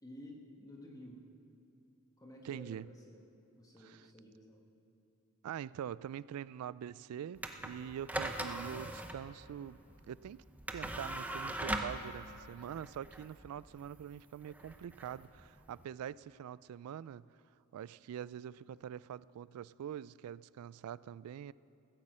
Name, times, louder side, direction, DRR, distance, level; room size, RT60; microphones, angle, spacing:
voice 1, 0.0-1.3 2.2-3.2 3.6-4.6, left 1 dB, 15° left, 0 dB, 1.3 m, -52 dB
voice 2, 2.4-2.9 3.8-4.1 5.4-9.8 10.1-10.4 10.7-17.3 17.7-21.5, right 9 dB, 90° right, 18 dB, 0.3 m, -44 dB
sound 1, 7.4-15.8, right 1 dB, 5° right, 0.7 m, -41 dB
15.0 x 9.8 x 7.6 m, 2.7 s
head